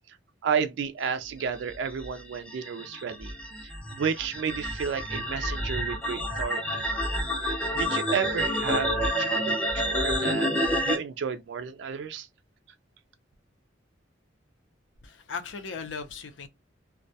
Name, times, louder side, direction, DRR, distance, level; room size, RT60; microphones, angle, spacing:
voice 1, 0.4-3.3 3.6-3.7 4.0-6.8 7.4-12.3, right 6 dB, 65° right, 0.3 m, -32 dB
sound 1, 1.7-11.0, equal, 5° left, 0.6 m, -29 dB
voice 2, 15.0-16.5, left 5 dB, 75° left, 0.5 m, -37 dB
2.2 x 2.1 x 2.6 m
head